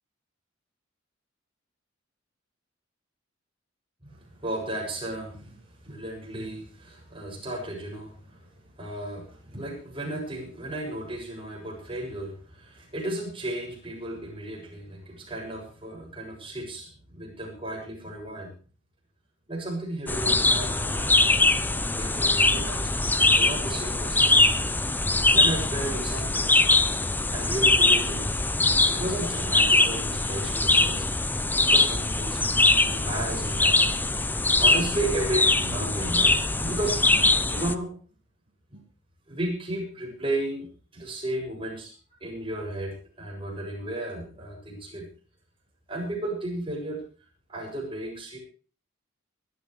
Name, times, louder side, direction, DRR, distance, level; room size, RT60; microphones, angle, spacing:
voice 1, 4.4-5.6 5.8-8.5 8.8-18.5 19.5-24.6 25.3-26.6 27.3-28.4 28.8-31.0 31.7-32.5 32.9-34.3 34.6-37.9 38.7-38.8 39.3-41.9 42.2-45.1 45.9-47.0 47.5-48.4, right 1 dB, 25° right, 0 dB, 7.2 m, -34 dB
sound 1, 20.1-37.7, left 2 dB, 10° left, 0.6 m, -22 dB
22.0 x 13.0 x 3.3 m, 0.39 s
head